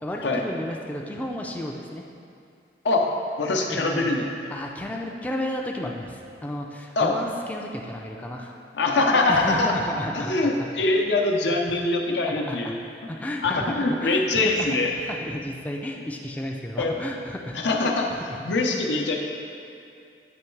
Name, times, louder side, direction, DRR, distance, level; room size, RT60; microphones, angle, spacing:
voice 1, 0.0-2.0 3.7-4.1 4.5-8.5 9.3-10.5 11.7-11.8 12.2-12.7 13.1-13.7 14.0-17.6 18.1-18.4, left 1 dB, 10° left, -1 dB, 0.3 m, -33 dB
voice 2, 3.4-4.3 7.0-7.2 8.8-9.8 10.2-12.8 13.0-13.1 13.4-14.9 16.8-16.9 17.5-19.2, left 2 dB, 85° left, 1 dB, 0.6 m, -23 dB
8.1 x 3.1 x 4.5 m, 2.5 s
head